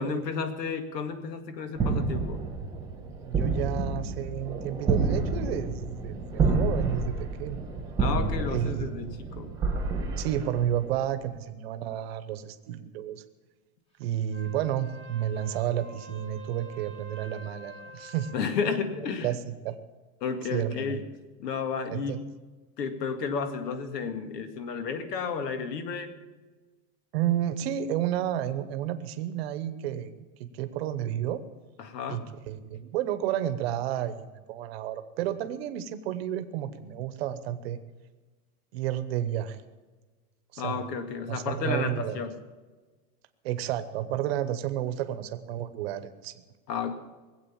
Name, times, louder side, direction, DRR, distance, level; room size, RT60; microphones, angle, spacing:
voice 1, 0.0-2.4 8.0-9.5 18.3-19.4 20.2-21.0 21.4-22.2 22.8-26.1 31.8-32.3 40.6-42.4 46.7-46.9, left 5 dB, 90° left, 9 dB, 2.1 m, -32 dB
sound 1, 1.7-11.1, right 3 dB, 10° right, 1.2 m, -29 dB
voice 2, 3.2-7.7 8.5-9.2 10.2-13.2 14.0-18.3 19.2-19.7 20.5-21.0 21.9-22.2 27.1-30.1 30.4-31.4 32.1-37.8 38.7-39.6 40.5-40.8 41.3-42.2 43.4-46.3, right 11 dB, 40° right, 11 dB, 1.0 m, -31 dB
Wind instrument woodwind instrument, 14.2-18.5, equal, 15° left, 1.1 m, -47 dB
20.0 x 8.1 x 7.2 m, 1.3 s
supercardioid pair, 175°, 47 cm